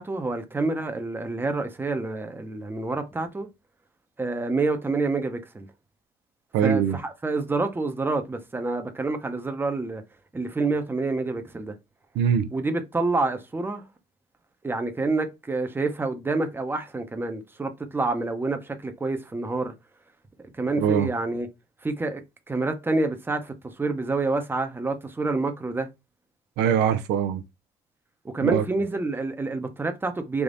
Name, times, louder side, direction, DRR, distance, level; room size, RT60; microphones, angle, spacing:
voice 1, 0.0-3.5 4.2-5.7 6.6-10.0 10.3-11.8 12.5-13.8 14.6-19.7 20.6-21.5 21.8-22.2 22.5-25.9 28.2-30.4, right 3 dB, 10° right, 0.7 m, -28 dB
voice 2, 6.5-7.0 12.1-12.5 20.8-21.1 26.6-27.4 28.4-28.6, right 8 dB, 85° right, 0.5 m, -22 dB
3.5 x 2.7 x 3.8 m
cardioid pair, 110°, 17 cm